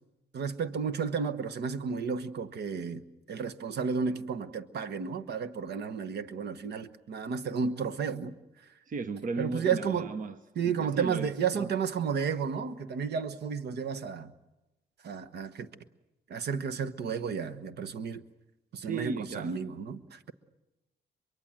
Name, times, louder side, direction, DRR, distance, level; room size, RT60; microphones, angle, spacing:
voice 1, 0.3-3.0 3.3-8.3 9.4-10.1 10.6-14.3 15.0-15.7 16.3-18.2 18.7-20.3, right 6 dB, 65° right, 1.2 m, -32 dB
voice 2, 8.9-10.4 10.6-11.7 18.8-19.6, right 4 dB, 45° right, 1.2 m, -36 dB
23.5 x 23.5 x 7.6 m
cardioid pair, 75°, 18 cm